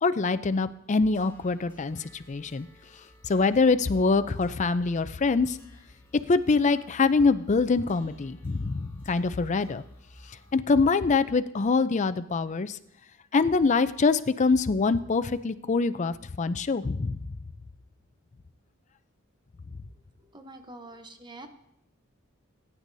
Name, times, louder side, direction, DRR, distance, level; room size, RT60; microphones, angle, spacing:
voice 1, 0.0-2.7 3.3-5.6 6.3-9.8 10.5-12.8 13.3-17.2, left 4 dB, 35° left, 12 dB, 0.4 m, -24 dB
sound 1, 1.1-10.6, left 1 dB, 15° left, 3.0 m, -52 dB
voice 2, 20.3-21.5, right 2 dB, 20° right, 7 dB, 0.8 m, -45 dB
21.0 x 9.8 x 2.7 m, 0.79 s
head